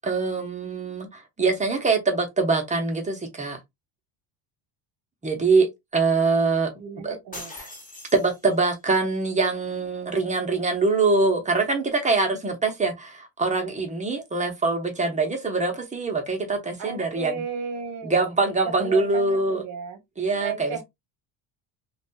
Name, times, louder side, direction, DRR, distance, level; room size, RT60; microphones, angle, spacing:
voice 1, 0.0-3.6 5.2-6.7 7.0-7.2 7.6-7.7 8.1-17.4 18.0-19.6 20.2-20.8, right 3 dB, 15° right, 0.7 m, -24 dB
voice 2, 6.8-7.5 16.8-18.1 18.8-20.0 20.4-20.8, right 5 dB, 40° right, 1.0 m, -34 dB
sound 1, 7.3-8.8, left 2 dB, 15° left, 0.8 m, -41 dB
2.5 x 2.3 x 2.5 m
cardioid pair, 115°, 46 cm